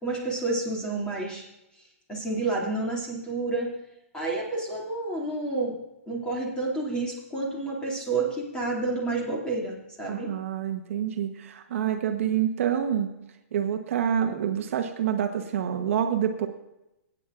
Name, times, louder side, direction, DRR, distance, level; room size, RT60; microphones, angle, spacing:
voice 1, 0.0-1.4 2.1-3.7 4.1-5.8 6.1-10.3, right 3 dB, 10° left, -2 dB, 2.4 m, -29 dB
voice 2, 10.1-13.1 13.5-16.5, right 9 dB, 60° right, 5 dB, 1.0 m, -27 dB
21.0 x 9.1 x 2.5 m, 0.91 s
hypercardioid pair, 160°, 8 cm